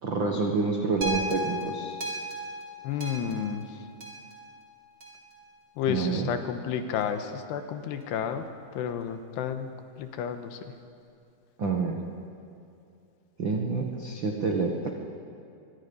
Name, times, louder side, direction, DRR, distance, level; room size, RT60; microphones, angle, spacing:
voice 1, 0.0-1.9 5.9-6.3 11.6-12.0 13.4-14.9, right 4 dB, 75° right, 1 dB, 1.1 m, -28 dB
sound 1, 1.0-5.3 6.0-6.1, right 1 dB, 25° right, 3.9 m, -36 dB
voice 2, 2.8-3.7 5.8-8.5 8.7-9.7 10.0-10.6, left 8 dB, 85° left, 8 dB, 3.3 m, -31 dB
24.0 x 23.0 x 5.5 m, 2.6 s
omnidirectional pair, 4.7 m